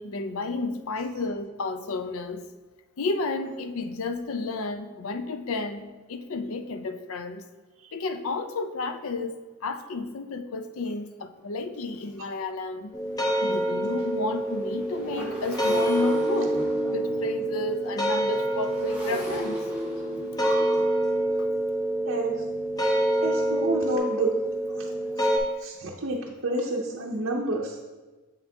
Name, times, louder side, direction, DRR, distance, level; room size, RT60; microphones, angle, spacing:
voice 1, 0.0-2.5 3.0-7.4 7.9-13.0 13.4-16.6 16.9-19.6 21.4-21.5, left 3 dB, 65° left, 9 dB, 0.5 m, -32 dB
Motorcycle, 11.4-11.5 11.9-12.1 12.4-24.0, equal, 5° right, 1.2 m, -39 dB
sound 1, 12.9-25.4, right 1 dB, 15° left, 0.6 m, -27 dB
voice 2, 20.4-20.9 22.0-22.3 23.2-24.3 24.8-24.9 25.2-25.3 25.6-27.8, right 2 dB, 55° right, -2 dB, 0.6 m, -30 dB
7.0 x 5.7 x 2.7 m, 1.2 s
head